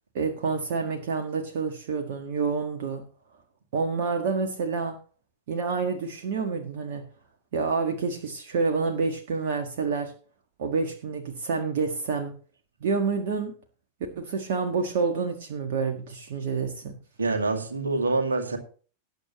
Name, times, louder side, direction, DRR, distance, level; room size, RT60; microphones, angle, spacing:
voice 1, 0.1-3.0 3.7-5.0 5.5-7.0 7.5-10.1 10.6-12.3 12.8-13.5 14.1-16.9, right 4 dB, 55° right, 1.6 m, -28 dB
voice 2, 17.2-18.6, right 3 dB, 75° right, 2.1 m, -26 dB
18.5 x 8.5 x 3.0 m
figure-of-eight pair, 90°, 0 cm